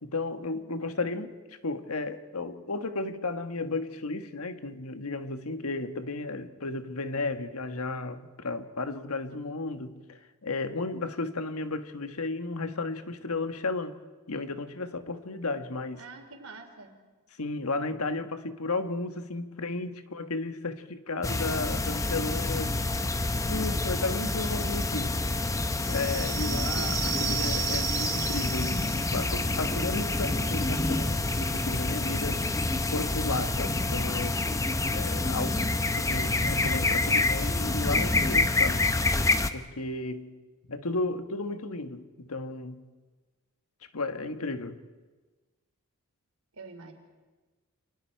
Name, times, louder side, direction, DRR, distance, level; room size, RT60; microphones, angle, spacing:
voice 1, 0.0-1.3 1.6-14.0 14.3-16.0 17.4-22.7 23.4-25.2 25.9-32.4 32.9-34.4 34.9-38.9 39.5-40.3 40.7-42.9 43.9-44.8, left 3 dB, 85° left, 1.4 m, -34 dB
voice 2, 16.0-17.0 41.5-41.6 46.5-46.9, right 3 dB, 80° right, 3.6 m, -47 dB
sound 1, 21.2-39.5, left 2 dB, 15° left, 0.8 m, -27 dB
sound 2, 25.8-33.1, right 14 dB, 55° right, 0.6 m, -37 dB
30.0 x 25.5 x 4.6 m
head